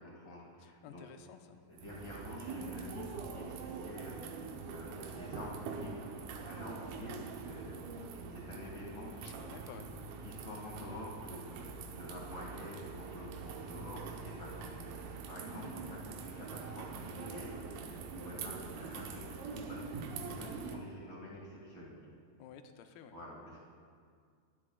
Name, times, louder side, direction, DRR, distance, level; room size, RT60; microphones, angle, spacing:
voice 1, 0.0-1.0 1.6-7.8 8.3-9.4 10.2-19.8 20.3-22.1 23.1-23.6, left 1 dB, 45° left, -4 dB, 1.6 m, -48 dB
voice 2, 0.6-1.6 9.2-9.9 15.6-15.9 22.4-23.2, left 8 dB, 90° left, 7 dB, 2.5 m, -53 dB
sound 1, 1.8-20.8, right 5 dB, 90° right, 2.6 m, -44 dB
19.5 x 9.6 x 2.3 m, 2.1 s
omnidirectional pair, 4.2 m